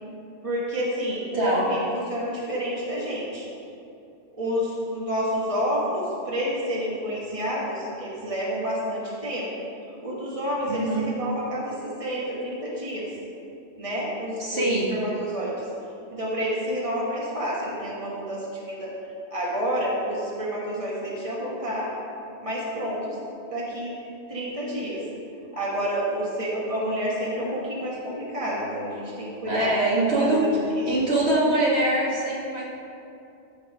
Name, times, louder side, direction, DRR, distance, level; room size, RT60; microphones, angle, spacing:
voice 1, 0.4-3.4 4.3-9.5 10.0-13.1 13.8-15.5 16.1-18.9 19.3-21.9 22.4-23.2 23.5-25.0 25.5-29.7 30.2-31.0, equal, 30° right, -5 dB, 1.8 m, -29 dB
voice 2, 1.3-1.6 10.7-11.1 14.4-14.9 29.5-30.5 30.9-32.6, right 2 dB, 65° right, -6 dB, 1.8 m, -23 dB
14.0 x 4.7 x 5.0 m, 2.7 s
omnidirectional pair, 1.2 m